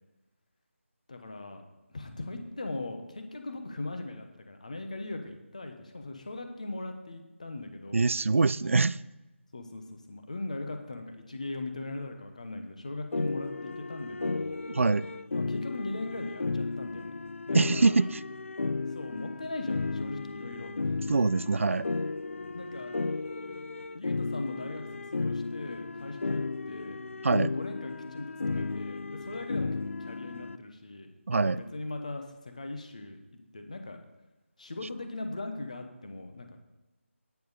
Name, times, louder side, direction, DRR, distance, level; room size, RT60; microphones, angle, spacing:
voice 1, 1.1-1.6 1.9-8.1 9.5-14.6 15.3-17.1 17.5-18.0 18.9-21.0 22.5-22.9 23.9-27.0 27.4-33.2 33.5-34.0 34.6-36.6, left 2 dB, 30° left, 5 dB, 1.1 m, -39 dB
voice 2, 7.9-9.0 14.7-15.1 17.5-18.2 21.1-21.8 27.2-27.5 31.3-31.6, right 3 dB, 70° right, 19 dB, 0.3 m, -24 dB
sound 1, 13.1-30.6, left 3 dB, 70° left, 0.4 m, -34 dB
10.0 x 9.4 x 4.1 m, 1.1 s
figure-of-eight pair, 180°, 7 cm